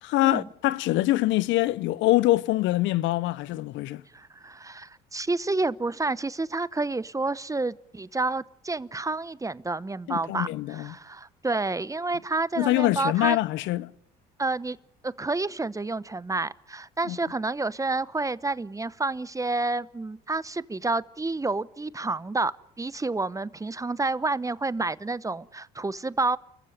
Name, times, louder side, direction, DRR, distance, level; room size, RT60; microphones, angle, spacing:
voice 1, 0.0-4.0 10.1-10.9 12.6-13.9 17.0-17.2, left 17 dB, 65° left, 0.9 m, -24 dB
voice 2, 4.1-13.4 14.4-14.8 15.0-26.4, right 3 dB, 15° right, 0.9 m, -29 dB
30.0 x 15.0 x 9.6 m
hypercardioid pair, 65°, 21 cm